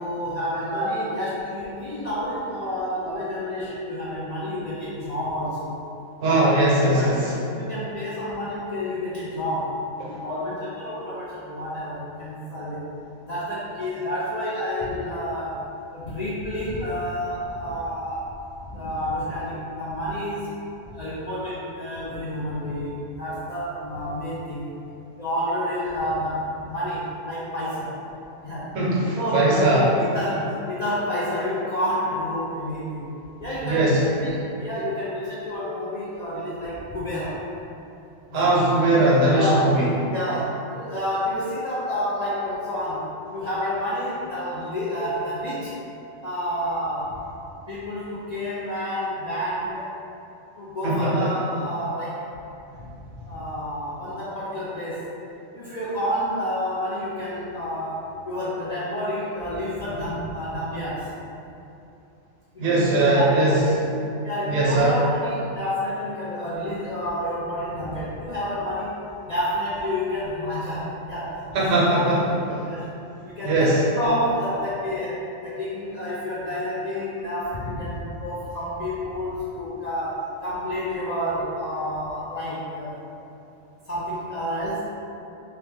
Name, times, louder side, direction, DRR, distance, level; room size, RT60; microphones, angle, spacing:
voice 1, 0.0-5.7 6.8-7.3 7.5-9.8 10.0-12.8 13.2-18.3 18.7-20.5 20.9-24.6 25.2-28.0 28.4-28.8 29.2-33.1 33.4-37.4 38.3-38.7 39.3-39.8 40.1-45.7 46.2-47.2 47.7-49.9 50.6-52.2 52.8-52.9 53.3-55.1 55.5-61.1 62.5-63.6 64.2-69.0 69.2-72.0 72.7-73.0 73.2-83.0 83.9-84.8, equal, 80° left, -10 dB, 0.3 m, -29 dB
voice 2, 6.2-7.3 28.7-29.9 33.6-34.1 38.3-39.9 50.8-51.3 62.6-63.6 64.5-65.0 71.5-72.2 72.5-72.6 73.4-73.8, right 2 dB, 85° right, -5 dB, 1.1 m, -20 dB
2.8 x 2.1 x 3.2 m, 2.7 s
omnidirectional pair, 1.3 m